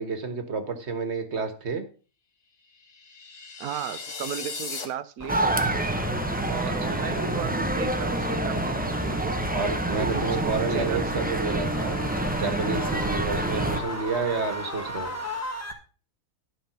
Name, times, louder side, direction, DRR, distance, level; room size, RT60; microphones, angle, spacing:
voice 1, 0.0-1.8 6.6-7.0 9.5-12.0 12.4-15.1, right 4 dB, 45° right, 8 dB, 1.6 m, -30 dB
sound 1, 2.8-4.8, left 4 dB, 55° left, 1.7 m, -37 dB
voice 2, 3.6-5.7 6.4-9.4 10.0-11.3, right 10 dB, 75° right, 14 dB, 1.2 m, -35 dB
sound 2, 5.2-15.7, equal, 10° left, 1.4 m, -35 dB
sound 3, 5.3-13.8, right 1 dB, 10° right, 0.5 m, -27 dB
11.5 x 5.6 x 5.7 m, 0.37 s
omnidirectional pair, 1.6 m